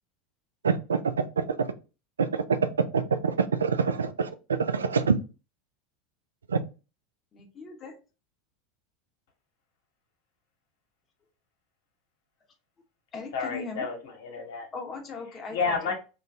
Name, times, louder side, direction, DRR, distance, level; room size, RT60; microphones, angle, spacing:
voice 1, 0.6-1.7 2.2-2.6 2.9-5.1 6.5-6.6, right 5 dB, 85° right, 0.4 m, -26 dB
voice 2, 7.3-7.9 13.1-13.9 14.7-15.9, left 4 dB, 30° left, 1.0 m, -39 dB
voice 3, 13.3-14.7 15.5-15.9, left 5 dB, 65° left, 1.2 m, -30 dB
2.6 x 2.5 x 3.3 m
hypercardioid pair, 85°, 0 cm